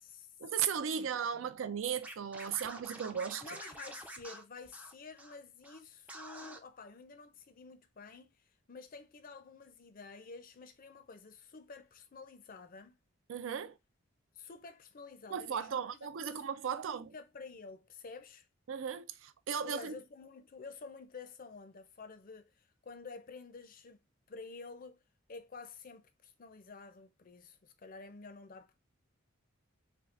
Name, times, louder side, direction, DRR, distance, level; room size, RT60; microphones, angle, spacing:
voice 1, 0.4-3.4 13.3-13.8 15.3-17.1 18.7-20.0, right 7 dB, 70° right, 0.4 m, -36 dB
voice 2, 0.9-1.5 3.4-13.0 14.3-16.4 16.7-18.5 19.6-24.0 24.3-25.0 25.3-28.8, left 4 dB, 45° left, 0.5 m, -50 dB
Scratching (performance technique), 2.0-5.4 5.6-5.8 6.1-6.6, right 1 dB, 5° right, 0.4 m, -48 dB
4.4 x 2.4 x 2.4 m
head